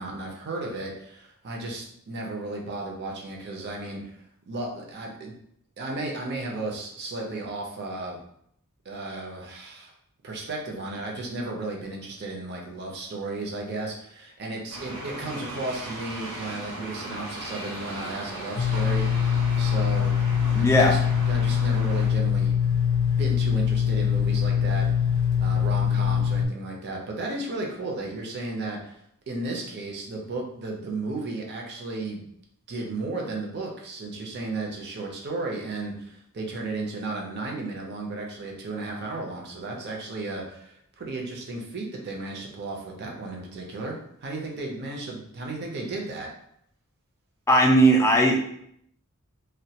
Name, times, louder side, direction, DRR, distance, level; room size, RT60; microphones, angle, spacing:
voice 1, 0.0-5.3 5.8-8.2 8.8-9.9 10.2-20.1 20.5-21.0 21.3-22.6 23.2-24.9 25.4-29.0 29.3-32.2 32.7-46.3, right 2 dB, 50° right, 0 dB, 0.5 m, -34 dB
sound 1, 14.7-22.1, right 1 dB, 80° right, 0.9 m, -38 dB
sound 2, 18.6-26.5, left 8 dB, 80° left, 0.4 m, -23 dB
voice 2, 20.5-20.9 47.5-48.5, right 1 dB, 15° left, 0 dB, 0.3 m, -18 dB
2.2 x 2.1 x 2.7 m, 0.71 s
head